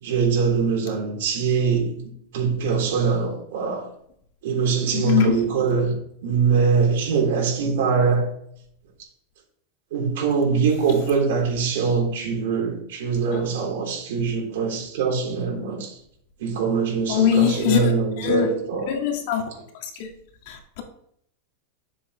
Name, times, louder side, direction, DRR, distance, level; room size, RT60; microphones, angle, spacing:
voice 1, 0.0-2.0 2.3-3.9 4.4-6.0 6.2-8.3 9.9-15.9 16.4-18.9, right 5 dB, 75° right, 3.5 m, -23 dB
voice 2, 4.9-5.4 13.3-13.4 17.1-18.5 18.9-19.4 19.8-20.1 20.5-20.8, left 8 dB, 55° left, 1.8 m, -22 dB
10.5 x 7.2 x 3.1 m
supercardioid pair, 160°, 0 cm